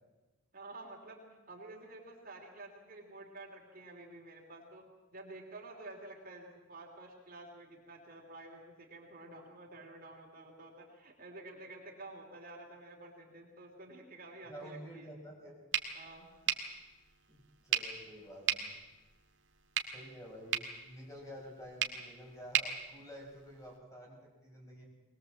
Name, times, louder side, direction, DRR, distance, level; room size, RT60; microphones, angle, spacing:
voice 1, 0.5-4.8 5.1-15.1 15.9-16.3, right 2 dB, 40° right, 0 dB, 3.4 m, -50 dB
voice 2, 14.5-15.7 16.7-16.8 17.3-18.8 19.9-24.9, equal, 15° left, -1 dB, 5.8 m, -50 dB
sound 1, 15.7-23.8, right 9 dB, 60° right, 2.1 m, -38 dB
21.0 x 21.0 x 7.5 m, 1.1 s
head